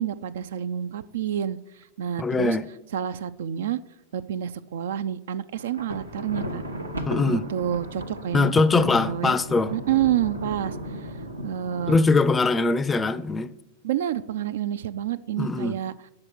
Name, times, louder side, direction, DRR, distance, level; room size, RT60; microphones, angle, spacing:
voice 1, 0.0-2.6 2.9-3.8 4.1-6.6 7.3-9.3 9.7-11.1 11.4-12.0 13.8-15.9, right 10 dB, 60° right, 0.3 m, -28 dB
voice 2, 2.2-2.6 7.1-7.4 8.3-9.7 11.9-13.5 15.4-15.8, left 3 dB, 15° left, 0.4 m, -22 dB
Thunder, 5.6-12.8, equal, 80° right, 0.9 m, -35 dB
8.7 x 6.2 x 6.0 m
figure-of-eight pair, 90°, 0 cm